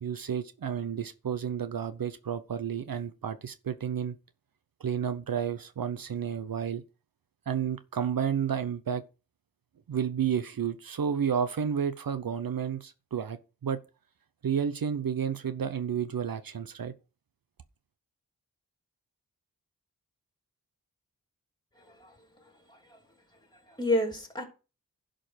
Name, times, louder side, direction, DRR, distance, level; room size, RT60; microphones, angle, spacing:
voice 1, 0.0-4.2 4.8-6.8 7.5-9.0 9.9-13.8 14.4-16.9, right 8 dB, 70° right, 0.8 m, -31 dB
voice 2, 21.8-22.2 22.4-23.0 23.7-24.4, left 1 dB, 10° left, 3.4 m, -31 dB
11.5 x 5.1 x 6.0 m
wide cardioid pair, 75°, 36 cm